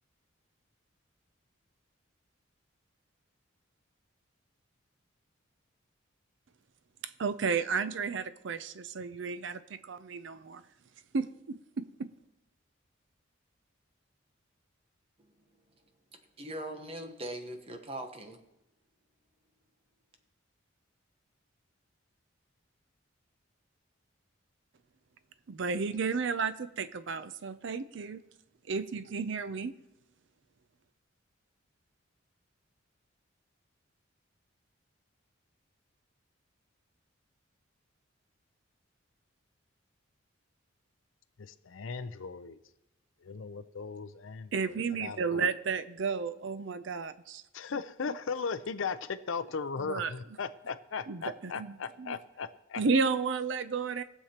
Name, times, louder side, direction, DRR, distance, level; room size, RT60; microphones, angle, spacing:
voice 1, 7.0-10.6 11.1-12.1 25.5-28.2 28.7-29.7 44.5-47.4 49.8-50.1 51.1-52.2 52.8-54.0, right 5 dB, 60° right, 13 dB, 0.5 m, -33 dB
voice 2, 16.4-18.4, right 1 dB, 30° right, 6 dB, 1.0 m, -40 dB
voice 3, 41.4-42.6 43.2-45.5 47.5-52.8, left 5 dB, 70° left, 12 dB, 0.6 m, -37 dB
20.5 x 7.3 x 2.9 m, 0.91 s
head